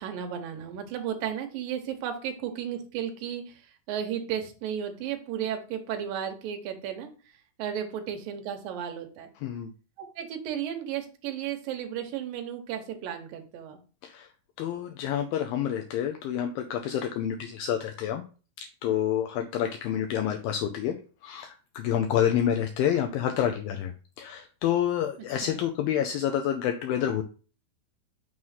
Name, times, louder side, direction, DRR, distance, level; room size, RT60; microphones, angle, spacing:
voice 1, 0.0-7.1 7.6-9.3 10.2-13.8 25.2-25.6, right 9 dB, 75° right, 6 dB, 2.3 m, -34 dB
voice 2, 14.6-18.2 18.8-21.0 21.2-23.9 24.2-27.2, left 10 dB, 80° left, 4 dB, 2.2 m, -28 dB
6.3 x 3.0 x 5.5 m, 0.37 s
omnidirectional pair, 4.4 m